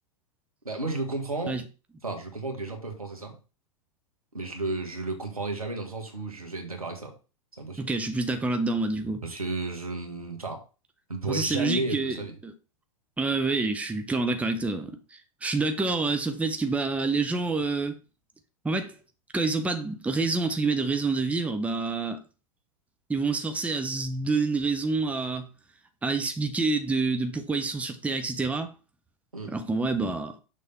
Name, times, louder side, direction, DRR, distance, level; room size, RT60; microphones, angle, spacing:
voice 1, 0.6-1.6 2.0-3.4 4.3-7.1 7.5-7.9 9.2-10.6 11.1-12.3 29.3-29.5, right 2 dB, 90° right, 1.8 m, -33 dB
voice 2, 7.8-9.2 11.3-12.5 13.2-18.0 18.6-18.9 19.3-22.2 23.1-25.5 26.0-28.7 29.5-30.4, right 3 dB, 5° right, 0.8 m, -27 dB
6.4 x 3.5 x 5.9 m
figure-of-eight pair, 95°, 18 cm